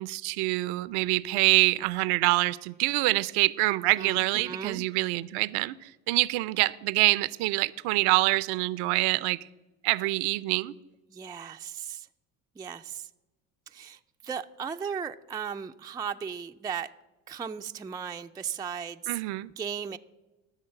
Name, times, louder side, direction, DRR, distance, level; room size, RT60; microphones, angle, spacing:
voice 1, 0.0-9.4 9.8-10.7 19.1-19.5, right 21 dB, 70° right, 0.6 m, -25 dB
voice 2, 4.0-4.9 11.1-12.1 12.6-13.1 13.7-16.9 17.3-20.0, right 7 dB, 10° right, 0.3 m, -36 dB
13.0 x 6.3 x 7.5 m
supercardioid pair, 75°, 40 cm